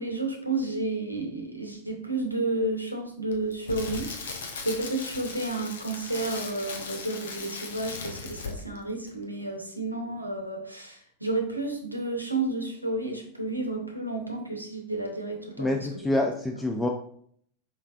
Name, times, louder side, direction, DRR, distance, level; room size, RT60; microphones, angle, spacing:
voice 1, 0.0-16.1, right 2 dB, 90° right, 2 dB, 0.7 m, -31 dB
Crackle, 3.3-8.8 9.1-9.2, left 4 dB, 65° left, 0.6 m, -38 dB
voice 2, 15.6-16.9, left 1 dB, 10° left, 2 dB, 0.3 m, -26 dB
4.5 x 3.2 x 2.4 m, 0.63 s
figure-of-eight pair, 90°, 0 cm